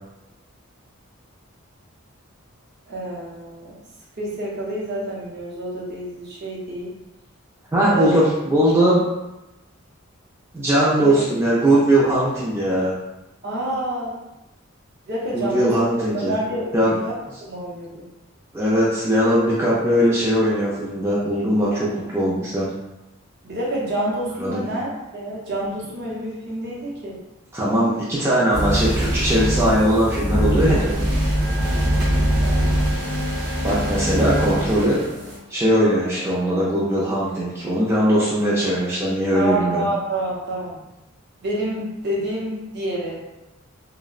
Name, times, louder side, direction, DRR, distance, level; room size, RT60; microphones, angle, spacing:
voice 1, 2.9-3.8 4.2-7.0 7.9-8.3 11.0-11.2 13.4-14.2 15.1-16.7 17.0-17.1 17.4-18.1 23.4-27.2 32.2-33.0 39.3-40.8 41.4-43.2, right 1 dB, 50° right, -5 dB, 0.6 m, -28 dB
voice 2, 7.7-9.0 10.5-12.9 15.3-16.4 16.7-17.0 18.5-22.7 24.4-24.6 27.5-31.0 33.6-35.0 35.5-39.8, right 1 dB, 10° right, -8 dB, 0.3 m, -20 dB
sound 1, 28.5-35.4, equal, 85° right, 0.9 m, -22 dB
2.7 x 2.0 x 2.4 m, 0.98 s
head